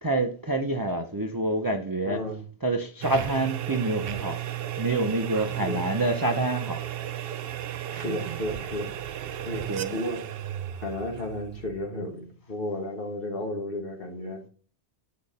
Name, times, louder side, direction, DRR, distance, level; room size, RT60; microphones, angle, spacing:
voice 1, 0.0-2.2 2.6-4.4 4.8-6.8 9.7-9.9, right 2 dB, 25° right, 0.6 m, -27 dB
voice 2, 2.1-2.4 5.6-5.9 7.9-8.9 9.4-10.5 10.8-14.5, left 1 dB, 55° left, 1.8 m, -33 dB
sound 1, 3.0-12.1, right 11 dB, 65° right, 0.7 m, -34 dB
8.6 x 5.1 x 4.1 m
omnidirectional pair, 1.2 m